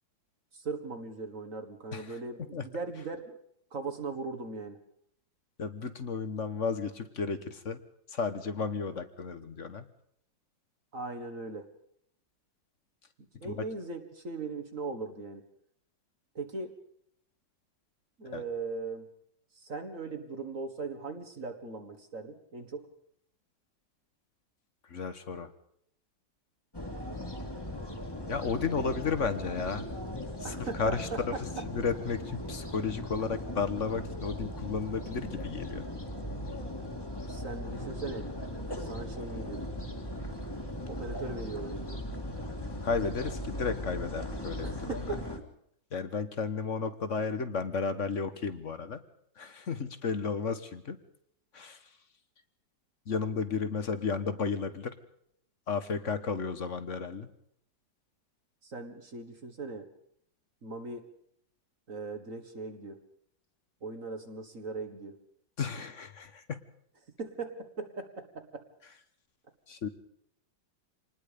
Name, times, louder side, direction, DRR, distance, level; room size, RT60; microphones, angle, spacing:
voice 1, 0.5-3.3 3.7-4.8 10.9-11.7 13.4-15.4 16.4-16.7 18.2-19.1 19.6-22.9 30.4-31.4 37.3-38.3 38.6-39.6 40.8-42.0 44.6-45.3 58.6-59.9 60.6-61.0 61.9-63.0 63.8-65.2 67.2-68.6, right 3 dB, 45° right, 6 dB, 1.9 m, -39 dB
voice 2, 5.6-7.8 8.1-9.8 13.4-13.6 18.3-18.4 24.9-25.5 28.3-29.9 30.4-31.4 31.6-35.9 42.8-45.0 45.9-49.0 49.4-51.0 51.5-51.8 53.1-54.9 55.7-57.3 65.6-66.6 69.7-69.9, left 5 dB, 45° left, 11 dB, 1.5 m, -33 dB
Urban Park Loop, 26.7-45.4, left 1 dB, 15° left, 2.2 m, -38 dB
26.5 x 20.0 x 5.2 m, 0.71 s
omnidirectional pair, 2.0 m